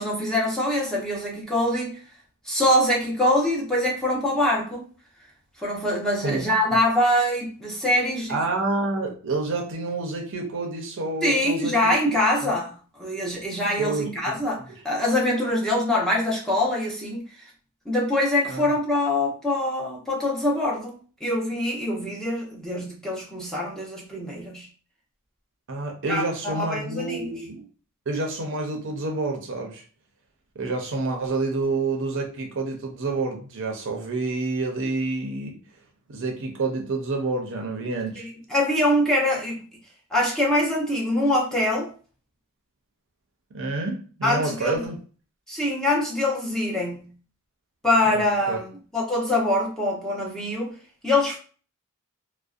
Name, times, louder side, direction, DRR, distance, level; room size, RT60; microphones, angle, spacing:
voice 1, 0.0-2.0 2.4-4.8 5.6-8.4 11.2-17.2 17.9-24.7 26.0-27.3 38.2-39.6 40.1-41.9 44.2-44.8 45.5-47.1 47.8-50.7 51.0-51.4, left 1 dB, ahead, -5 dB, 0.6 m, -24 dB
voice 2, 8.3-11.9 12.4-12.5 13.8-14.1 18.5-18.7 25.7-27.6 28.1-29.8 30.6-35.6 36.1-38.3 43.5-45.0 48.1-48.2 48.5-48.6, right 3 dB, 55° right, 1 dB, 0.5 m, -28 dB
2.5 x 2.1 x 2.4 m, 0.39 s
head